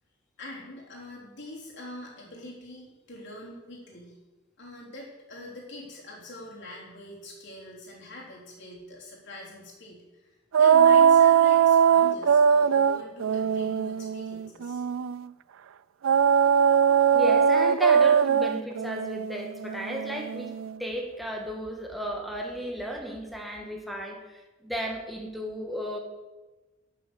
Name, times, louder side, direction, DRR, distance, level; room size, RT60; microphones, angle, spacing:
voice 1, 0.4-4.1 4.6-14.8, left 1 dB, 60° left, -3 dB, 3.5 m, -43 dB
sound 1, 10.5-15.2 16.0-20.7, right 7 dB, 80° right, 0.4 m, -21 dB
voice 2, 17.1-20.5 20.8-26.0, equal, ahead, 1 dB, 1.8 m, -34 dB
12.0 x 6.9 x 6.9 m, 1.1 s
head